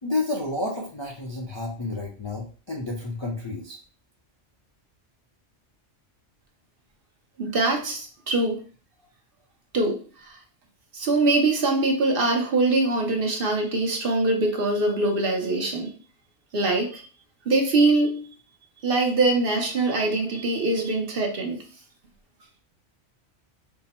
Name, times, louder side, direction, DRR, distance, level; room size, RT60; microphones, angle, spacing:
voice 1, 0.0-3.8, left 2 dB, 35° left, -2 dB, 0.5 m, -30 dB
voice 2, 7.4-8.6 9.7-10.4 10.9-15.9 16.5-17.0 17.5-18.3 18.8-21.6, right 2 dB, 55° right, 2 dB, 0.9 m, -23 dB
3.6 x 2.0 x 4.2 m, 0.38 s
omnidirectional pair, 1.2 m